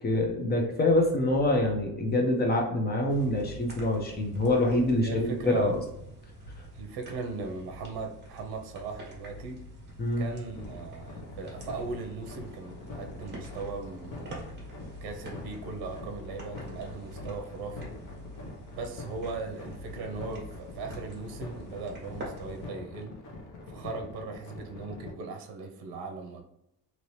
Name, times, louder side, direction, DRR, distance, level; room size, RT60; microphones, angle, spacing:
voice 1, 0.0-5.7 10.0-10.2, left 1 dB, 25° left, 2 dB, 0.6 m, -25 dB
sound 1, 3.1-22.7, equal, 25° right, 1.2 m, -45 dB
voice 2, 5.0-5.7 6.8-9.6 10.2-14.4 15.0-17.9 18.7-23.2 23.7-26.4, right 4 dB, 70° right, 4 dB, 0.7 m, -38 dB
sound 2, 10.6-25.1, left 3 dB, 50° left, 0.9 m, -44 dB
2.8 x 2.8 x 3.1 m, 0.82 s
cardioid pair, 155°, 39 cm